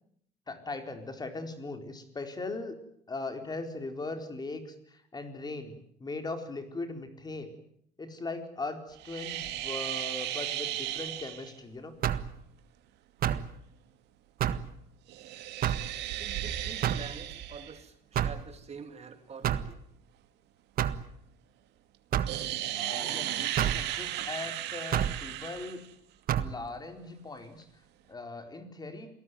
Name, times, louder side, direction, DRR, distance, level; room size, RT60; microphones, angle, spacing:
voice 1, 0.5-2.8 3.1-5.7 6.0-7.5 8.0-11.9 22.7-25.8 26.4-27.7 28.1-29.1, left 3 dB, 25° left, 6 dB, 4.3 m, -39 dB
sound 1, 9.0-11.5 15.1-17.8 22.3-25.9, right 13 dB, 85° right, 2.5 m, -35 dB
sound 2, 12.0-12.3 13.2-13.5 14.4-14.7 15.6-15.9 16.8-17.1 18.2-18.4 19.4-19.7 20.8-21.0 22.1-22.4 23.6-23.8 24.9-25.2 26.3-26.5, right 10 dB, 60° right, 1.6 m, -28 dB
voice 2, 16.2-19.7, right 6 dB, 40° right, 8 dB, 2.4 m, -46 dB
28.0 x 18.5 x 9.4 m, 0.71 s
cardioid pair, 110°, 17 cm